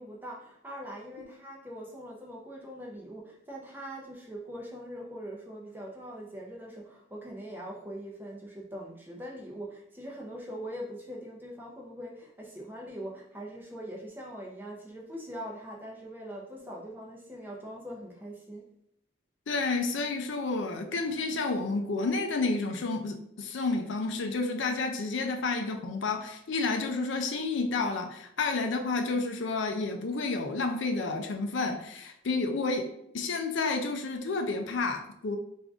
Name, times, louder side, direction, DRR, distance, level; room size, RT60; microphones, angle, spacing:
voice 1, 0.0-18.7, equal, 10° right, -2 dB, 0.6 m, -42 dB
voice 2, 19.5-35.4, left 3 dB, 65° left, 5 dB, 0.5 m, -30 dB
3.6 x 2.6 x 3.5 m, 0.75 s
head